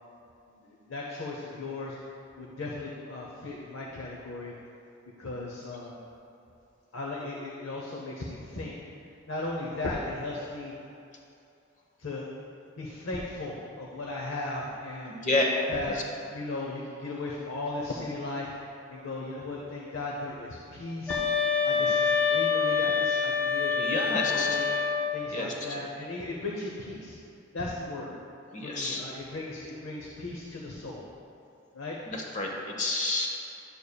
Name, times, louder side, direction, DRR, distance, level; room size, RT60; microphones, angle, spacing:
voice 1, 0.9-2.0 2.4-4.5 5.2-6.0 6.9-8.7 9.3-10.7 12.0-12.2 12.8-15.2 15.7-16.0 16.3-18.5 18.9-21.2 21.6-24.7 25.1-27.2 27.5-28.1 28.6-31.1 31.7-32.0, left 2 dB, 70° left, -3 dB, 0.8 m, -36 dB
voice 2, 15.1-16.0 21.7-22.0 23.8-24.6 25.3-25.7 28.5-29.0 32.0-33.3, left 2 dB, 35° left, 0 dB, 1.0 m, -30 dB
sound 1, 21.1-25.2, left 5 dB, 5° left, 0.6 m, -26 dB
11.0 x 6.9 x 2.3 m, 2.6 s
head